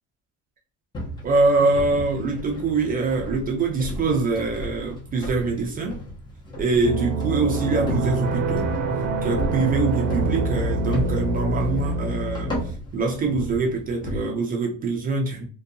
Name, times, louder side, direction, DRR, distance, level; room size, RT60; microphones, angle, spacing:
sound 1, 0.9-14.2, equal, 15° left, 0.6 m, -34 dB
voice 1, 1.2-6.0 6.6-8.7 9.2-12.5 12.9-15.4, right 3 dB, 25° right, 0.4 m, -24 dB
sound 2, 6.8-12.7, right 2 dB, 90° right, 0.6 m, -26 dB
2.5 x 2.2 x 2.6 m
cardioid pair, 150°, 34 cm